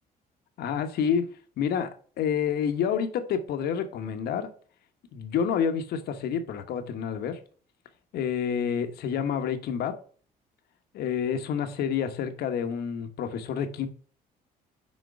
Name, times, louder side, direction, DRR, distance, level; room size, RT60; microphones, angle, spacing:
voice 1, 0.6-1.3 1.6-1.9 2.2-4.5 5.1-7.4 8.1-9.9 10.9-13.9, left 7 dB, 70° left, 8 dB, 1.1 m, -28 dB
6.4 x 4.5 x 4.7 m, 0.43 s
cardioid pair, 110°, 17 cm